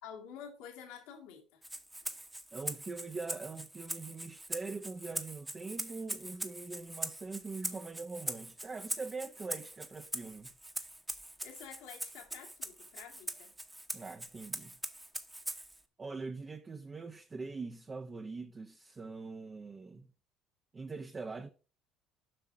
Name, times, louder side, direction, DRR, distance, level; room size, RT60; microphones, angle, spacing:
voice 1, 0.0-1.6 11.4-13.5, left 8 dB, 80° left, 2.2 m, -49 dB
Rattle (instrument), 1.6-15.8, right 1 dB, 10° right, 1.1 m, -42 dB
voice 2, 2.5-10.5 13.9-14.7 16.0-20.1 20.7-21.5, right 4 dB, 25° right, 0.8 m, -43 dB
7.7 x 5.7 x 5.0 m
supercardioid pair, 90°, 0 cm